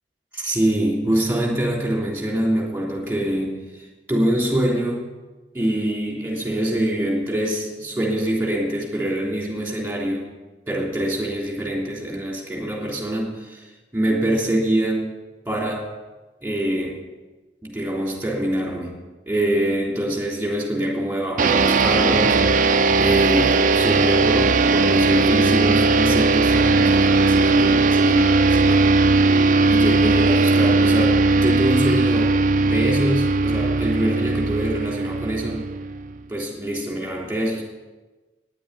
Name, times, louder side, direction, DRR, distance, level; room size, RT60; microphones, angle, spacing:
voice 1, 0.3-5.1 5.5-10.3 10.7-15.2 15.4-16.0 16.4-17.0 17.6-19.0 19.3-35.6 36.3-37.6, right 1 dB, 10° right, -2 dB, 3.3 m, -25 dB
sound 1, 21.4-36.2, right 3 dB, 50° right, 0.6 m, -18 dB
10.0 x 8.5 x 9.6 m, 1.2 s
head